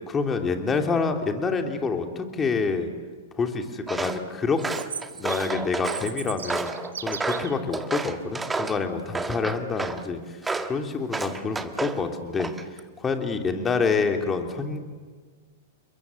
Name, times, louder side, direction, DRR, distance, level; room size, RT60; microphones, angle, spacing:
voice 1, 0.1-2.9 3.4-4.6 5.2-6.7 7.0-12.5 13.0-14.8, left 4 dB, 20° left, 5 dB, 3.2 m, -27 dB
Walk footsteps, 3.9-4.2 4.6-6.1 6.5-8.8 9.2-10.0 10.4-10.8 11.1-12.0 12.4-12.8, right 3 dB, 10° right, 1.6 m, -30 dB
Chirp tweet, 4.6-7.6, right 7 dB, 80° right, 1.7 m, -37 dB
29.5 x 22.0 x 7.9 m, 1.5 s
hypercardioid pair, 105°, 0 cm